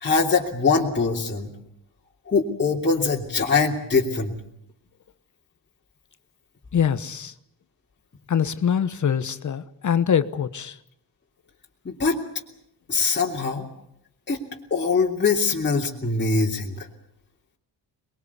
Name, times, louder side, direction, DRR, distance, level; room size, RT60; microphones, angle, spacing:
voice 1, 0.0-1.5 2.3-4.3 11.8-12.2 12.9-13.7 14.3-14.4 14.7-16.9, left 4 dB, 25° left, -3 dB, 3.1 m, -22 dB
voice 2, 6.7-7.3 8.3-10.8, left 8 dB, 45° left, 13 dB, 1.2 m, -24 dB
23.5 x 21.5 x 8.4 m, 0.76 s
cardioid pair, 95°, 42 cm